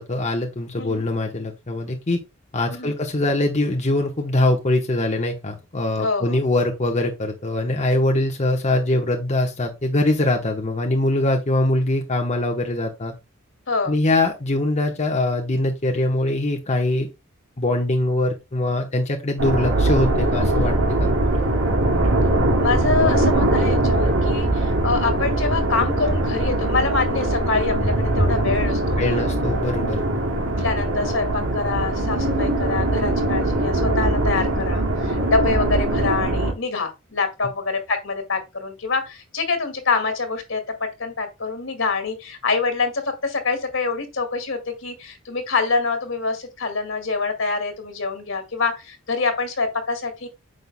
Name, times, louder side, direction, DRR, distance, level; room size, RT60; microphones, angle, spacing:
voice 1, 0.0-2.2 2.5-13.1 13.9-17.1 17.6-21.4 29.0-30.0, left 1 dB, 35° left, 1.0 m, -22 dB
voice 2, 6.0-6.4 13.7-14.0 22.6-29.3 30.6-50.3, left 4 dB, 65° left, 2.2 m, -25 dB
sound 1, 19.4-36.5, right 1 dB, 90° right, 2.1 m, -21 dB
9.5 x 6.5 x 2.2 m
head